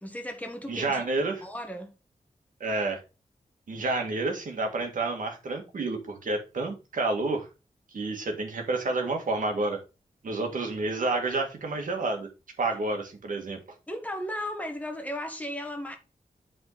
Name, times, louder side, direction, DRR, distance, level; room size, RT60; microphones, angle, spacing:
voice 1, 0.0-1.0 1.4-1.9 13.9-16.0, left 1 dB, 10° left, 1.4 m, -35 dB
voice 2, 0.7-1.4 2.6-3.0 3.7-7.5 7.9-9.8 10.2-12.3 12.6-13.6, right 3 dB, 70° right, 1.9 m, -29 dB
8.6 x 4.3 x 4.0 m
wide cardioid pair, 155°, 14 cm